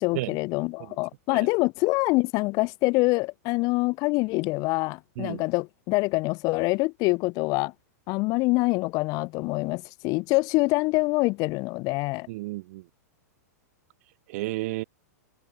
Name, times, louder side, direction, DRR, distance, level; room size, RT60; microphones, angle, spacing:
voice 1, 0.0-7.7 8.1-12.3, left 24 dB, 45° left, 1.5 m, -25 dB
voice 2, 12.3-12.8 14.3-14.8, right 20 dB, 55° right, 3.5 m, -32 dB
hypercardioid pair, 120°, 9 cm